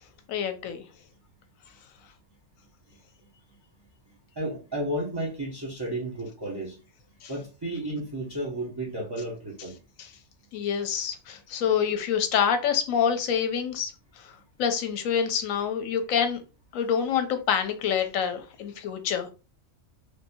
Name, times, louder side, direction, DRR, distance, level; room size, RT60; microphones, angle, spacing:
voice 1, 0.3-0.8 7.2-7.3 10.0-10.1 10.5-14.3 14.6-16.4 16.7-19.3, left 8 dB, 80° left, 1.0 m, -27 dB
voice 2, 4.4-6.8 7.3-9.8, right 1 dB, 25° right, 0.6 m, -32 dB
3.1 x 2.6 x 2.7 m
omnidirectional pair, 1.4 m